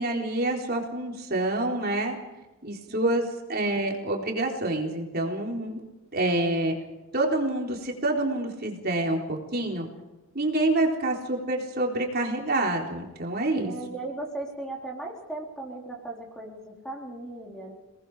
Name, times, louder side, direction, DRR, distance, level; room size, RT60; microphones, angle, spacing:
voice 1, 0.0-2.2 2.6-5.8 6.1-6.7 7.1-9.9 10.3-13.7, right 2 dB, 45° right, 0 dB, 3.9 m, -27 dB
voice 2, 13.6-17.7, right 2 dB, 5° left, -1 dB, 4.0 m, -37 dB
29.5 x 20.0 x 5.0 m, 1.1 s
head